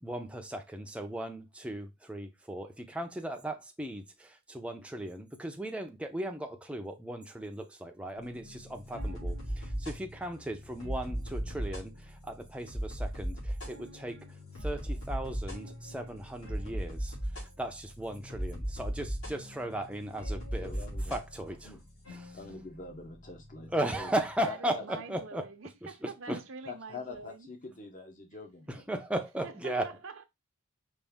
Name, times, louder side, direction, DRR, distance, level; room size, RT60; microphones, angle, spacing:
voice 1, 0.0-14.3 14.6-21.8 22.1-22.4 23.7-25.5 25.8-26.4 28.7-29.9, right 1 dB, 5° right, 0.6 m, -37 dB
sound 1, 8.2-24.4, equal, 70° left, 2.5 m, -38 dB
voice 2, 20.6-21.2 21.6-21.8 22.3-23.7 24.0-24.1 24.4-24.8 26.7-28.8, left 4 dB, 35° left, 0.9 m, -44 dB
voice 3, 24.4-27.5 29.4-30.2, right 4 dB, 60° right, 0.7 m, -45 dB
5.3 x 2.6 x 3.5 m
head